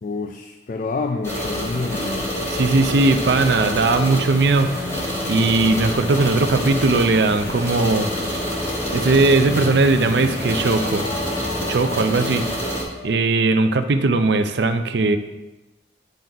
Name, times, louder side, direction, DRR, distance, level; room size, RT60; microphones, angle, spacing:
voice 1, 0.0-2.3, left 3 dB, 45° left, 6 dB, 0.3 m, -28 dB
sound 1, 1.2-12.8, equal, 15° left, 1.6 m, -27 dB
voice 2, 2.5-4.7 5.2-8.1 8.9-11.0 11.7-12.5 13.0-15.2, right 3 dB, 65° right, 9 dB, 0.5 m, -18 dB
sound 2, 5.4-12.1, equal, ahead, 0.7 m, -37 dB
Wind instrument woodwind instrument, 8.9-14.2, left 2 dB, 75° left, 0.8 m, -40 dB
9.2 x 3.9 x 4.5 m, 1.0 s
head